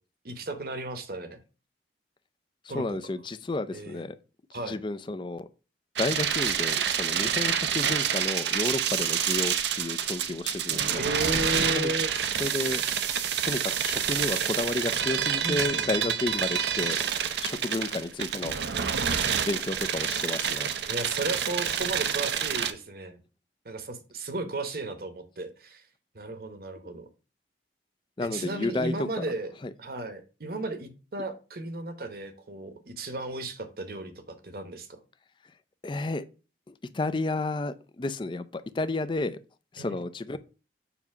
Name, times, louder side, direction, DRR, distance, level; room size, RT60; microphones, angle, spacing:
voice 1, 0.2-1.4 2.7-3.1 3.7-4.0 4.5-4.8 11.0-12.2 15.4-16.4 20.9-23.2 23.6-25.8 26.1-27.1 28.2-29.5 29.8-34.9 39.8-40.0, right 2 dB, 55° right, 1.0 m, -35 dB
voice 2, 2.6-4.2 4.6-5.5 6.0-11.0 11.8-11.9 12.4-12.8 13.4-17.0 17.4-18.6 19.5-20.7 28.2-29.2 29.6-29.7 35.8-36.3 36.7-39.4 39.7-40.4, left 2 dB, 25° left, 0.4 m, -31 dB
sound 1, 5.9-22.7, right 8 dB, 70° right, 0.6 m, -28 dB
7.0 x 2.8 x 5.8 m
head